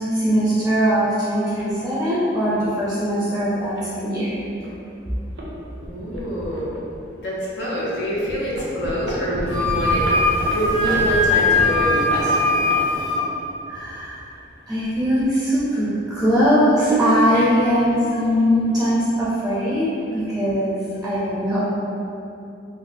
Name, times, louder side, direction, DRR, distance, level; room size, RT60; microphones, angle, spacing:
voice 1, 0.0-4.3 13.7-14.2 14.7-20.8 21.0-21.6, equal, 5° right, -10 dB, 0.5 m, -20 dB
sound 1, 1.6-1.7 2.5-2.7 3.3-3.4 3.8-3.9 4.6-4.8 5.1-5.5 5.8-7.1 7.6-7.7 8.2-13.8 14.6-15.6 17.3-18.4 18.7-19.0 19.2-19.3 19.6-20.0, equal, 75° right, 0.5 m, -30 dB
voice 2, 5.7-6.8 7.2-12.5 17.3-17.6, equal, 70° left, -7 dB, 0.8 m, -26 dB
Wind instrument woodwind instrument, 9.5-13.2, left 2 dB, 40° left, 1.2 m, -20 dB
3.8 x 2.0 x 2.6 m, 2.7 s
head